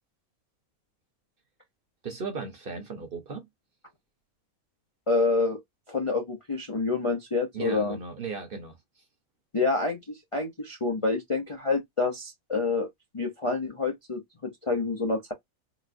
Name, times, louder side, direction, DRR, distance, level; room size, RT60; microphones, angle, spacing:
voice 1, 2.0-3.5 7.5-8.8, right 5 dB, 45° right, 1.0 m, -36 dB
voice 2, 5.1-5.6 5.9-8.0 9.5-12.9 13.1-15.3, left 3 dB, 35° left, 0.5 m, -28 dB
4.1 x 2.2 x 2.6 m
omnidirectional pair, 1.5 m